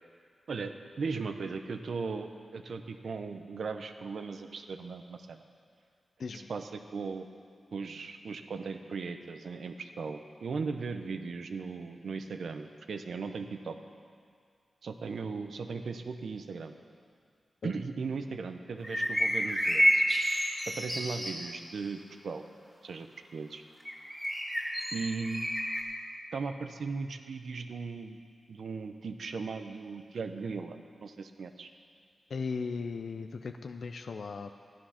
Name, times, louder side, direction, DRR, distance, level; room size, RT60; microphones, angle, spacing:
voice 1, 0.5-5.4 6.3-7.3 7.7-13.8 14.8-16.7 17.6-20.0 20.7-22.4 22.8-23.1 23.3-23.6 24.9-25.5 26.3-28.2 28.5-31.7, right 4 dB, 70° right, 7 dB, 0.7 m, -37 dB
sound 1, 18.8-21.5 23.9-25.8, equal, ahead, 2.7 m, -29 dB
voice 2, 32.3-34.6, left 4 dB, 65° left, 7 dB, 0.4 m, -37 dB
13.0 x 10.5 x 5.8 m, 2.1 s
wide cardioid pair, 115°, 0 cm